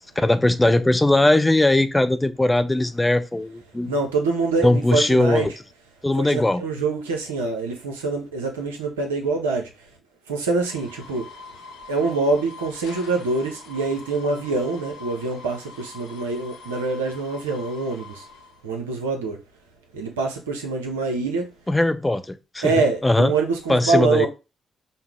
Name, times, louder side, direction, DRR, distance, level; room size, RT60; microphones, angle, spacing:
voice 1, 0.2-3.9 4.6-5.5 6.0-6.6 21.7-22.7 23.0-23.3 23.7-24.3, left 1 dB, 15° left, 0.5 m, -19 dB
voice 2, 3.8-5.6 6.1-9.9 10.3-11.3 11.9-18.3 18.6-19.4 19.9-21.5 22.6-24.3, right 3 dB, 85° right, 0.6 m, -25 dB
sound 1, 10.7-18.6, left 4 dB, 80° left, 0.6 m, -43 dB
5.4 x 2.0 x 3.5 m
figure-of-eight pair, 40°, 0 cm